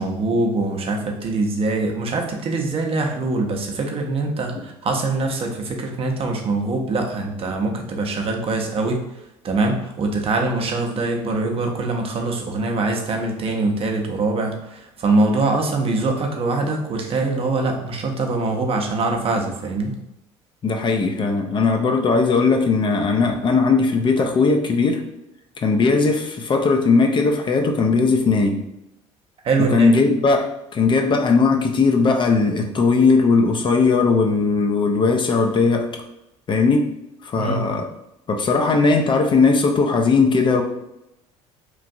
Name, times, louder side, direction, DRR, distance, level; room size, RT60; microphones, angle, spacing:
voice 1, 0.0-9.0 9.4-19.9 29.4-29.9 37.4-37.7, right 3 dB, 40° right, 2 dB, 0.6 m, -23 dB
voice 2, 20.6-25.0 25.6-28.6 29.6-30.5 30.7-35.9 36.5-36.9 37.2-37.8 38.3-40.6, left 4 dB, 30° left, 3 dB, 0.4 m, -18 dB
3.0 x 2.5 x 2.5 m, 0.88 s
hypercardioid pair, 60°, 15 cm